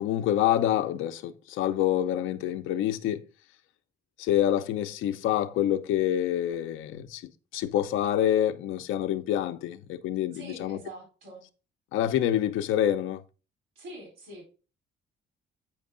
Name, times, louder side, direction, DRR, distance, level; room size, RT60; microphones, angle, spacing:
voice 1, 0.0-3.2 4.2-7.2 7.5-10.8 11.9-13.2, left 11 dB, 90° left, 0.7 m, -27 dB
voice 2, 10.3-11.4 13.8-14.5, right 1 dB, 75° right, 4.3 m, -44 dB
8.7 x 5.3 x 3.7 m
cardioid pair, 90°, 20 cm